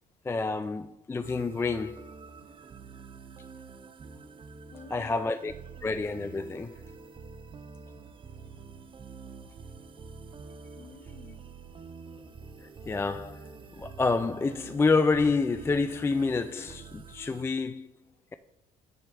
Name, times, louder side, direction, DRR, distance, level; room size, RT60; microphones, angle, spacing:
voice 1, 0.2-2.0 4.9-5.5 5.8-6.8 12.6-17.9, left 4 dB, 15° left, 0.3 m, -28 dB
sound 1, 1.2-17.4, right 5 dB, 30° right, 0.6 m, -47 dB
voice 2, 4.7-5.2 9.3-9.4 10.7-11.9, left 5 dB, 40° left, 1.1 m, -51 dB
9.9 x 3.4 x 6.8 m
cardioid pair, 110°, 17 cm